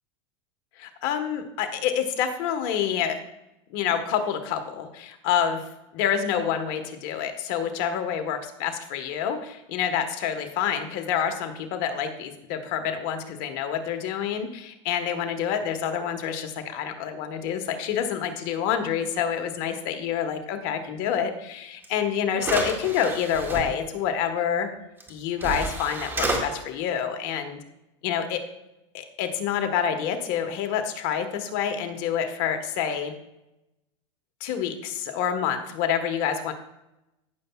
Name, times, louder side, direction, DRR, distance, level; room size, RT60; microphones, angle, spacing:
voice 1, 0.8-3.2 3.7-5.6 5.9-24.7 25.1-27.6 28.0-28.4 28.9-33.1 34.4-36.5, left 8 dB, 60° left, 7 dB, 1.3 m, -27 dB
sound 1, 21.8-21.9 22.4-23.6 25.0-25.1 25.4-26.4, right 2 dB, 15° right, 1.9 m, -29 dB
15.5 x 6.8 x 2.3 m, 0.91 s
supercardioid pair, 115°, 15 cm